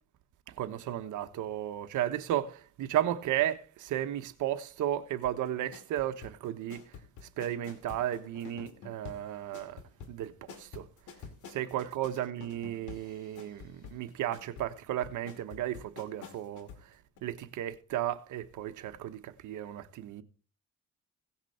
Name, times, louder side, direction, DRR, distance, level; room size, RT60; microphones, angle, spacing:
voice 1, 0.5-7.0 7.4-9.8 10.1-10.8 11.5-20.2, right 12 dB, 80° right, 1.3 m, -34 dB
sound 1, 5.2-16.9 17.2-17.3, left 6 dB, 85° left, 2.4 m, -49 dB
17.5 x 6.0 x 4.4 m
cardioid pair, 90°, 30 cm